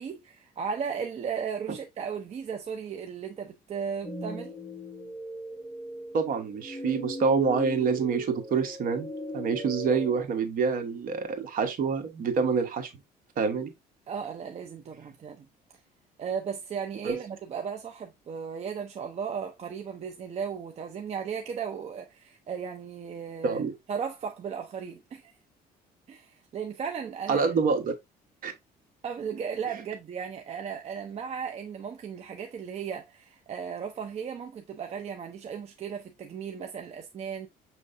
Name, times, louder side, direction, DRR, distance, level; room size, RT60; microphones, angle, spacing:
voice 1, 0.0-4.5 14.1-15.5 16.2-23.6 23.9-25.3 26.1-27.5 29.0-37.5, right 6 dB, 40° right, 0.6 m, -36 dB
sound 1, 4.0-10.3, equal, 10° left, 0.8 m, -38 dB
voice 2, 6.1-9.1 9.3-12.9 13.4-13.7 17.0-17.2 23.4-23.7 27.3-27.9 28.4-28.5, right 5 dB, 55° right, 1.1 m, -26 dB
6.4 x 3.2 x 2.6 m
cardioid pair, 110°, 17 cm